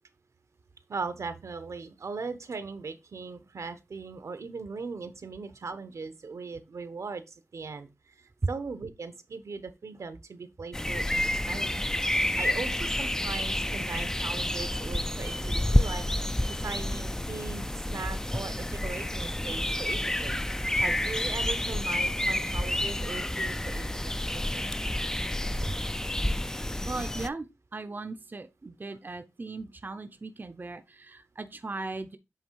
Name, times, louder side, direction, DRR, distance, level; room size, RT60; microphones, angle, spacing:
voice 1, 0.9-24.6, right 4 dB, 75° right, 1.0 m, -39 dB
sound 1, 10.7-27.3, left 1 dB, 10° left, 0.4 m, -29 dB
voice 2, 26.9-27.5 27.7-32.2, right 3 dB, 40° right, 0.7 m, -38 dB
8.0 x 3.3 x 4.6 m
cardioid pair, 60°, 5 cm